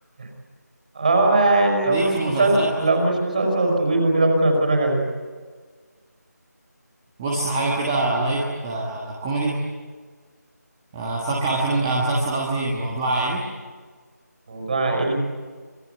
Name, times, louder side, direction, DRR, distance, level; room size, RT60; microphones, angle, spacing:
voice 1, 0.9-5.0 14.5-15.1, right 2 dB, 30° right, 1 dB, 5.8 m, -20 dB
voice 2, 1.8-2.7 7.2-9.6 10.9-13.4, right 2 dB, 10° right, -3 dB, 1.4 m, -24 dB
26.0 x 22.0 x 9.5 m, 1.5 s
figure-of-eight pair, 175°, 9 cm